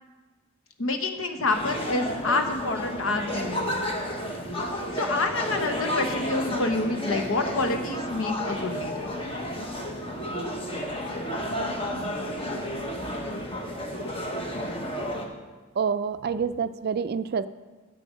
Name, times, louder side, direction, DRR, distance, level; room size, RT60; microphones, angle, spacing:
voice 1, 0.8-3.9 4.9-9.1, left 2 dB, 85° left, 5 dB, 1.0 m, -28 dB
sound 1, 1.5-15.3, equal, 30° left, 1.1 m, -31 dB
voice 2, 15.8-17.5, right 6 dB, 50° right, 13 dB, 0.4 m, -27 dB
9.9 x 7.6 x 5.2 m, 1.3 s
head